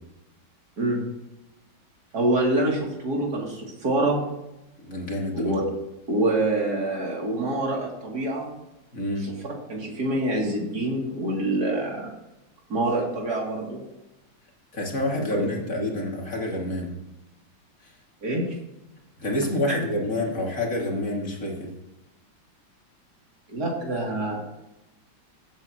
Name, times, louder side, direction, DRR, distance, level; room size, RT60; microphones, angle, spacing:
voice 1, 2.1-4.3 5.3-5.6 6.1-8.5 9.7-12.1 12.7-13.8 15.3-15.5 18.2-18.5 19.7-19.8 23.5-24.4, right 2 dB, 50° right, -2 dB, 3.4 m, -26 dB
voice 2, 4.8-5.5 8.9-9.3 14.7-16.9 17.8-17.9 19.2-21.7, left 1 dB, 40° left, -2 dB, 2.8 m, -28 dB
16.0 x 8.8 x 3.0 m, 0.94 s
omnidirectional pair, 2.1 m